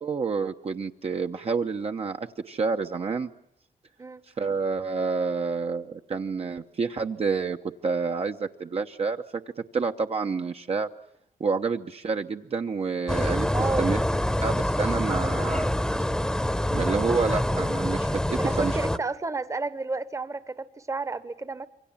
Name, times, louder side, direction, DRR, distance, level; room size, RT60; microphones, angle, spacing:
voice 1, 0.0-3.3 4.4-7.6 7.8-9.4 9.7-10.9 11.4-13.5 13.8-14.0 14.4-15.7 16.7-18.8, right 5 dB, 45° right, 5 dB, 0.9 m, -28 dB
sound 1, 13.1-19.0, left 1 dB, 5° left, 1.0 m, -26 dB
voice 2, 13.5-13.9 18.4-21.7, right 3 dB, 20° right, 14 dB, 1.1 m, -31 dB
27.5 x 23.5 x 7.3 m, 0.73 s
wide cardioid pair, 120°, 15 cm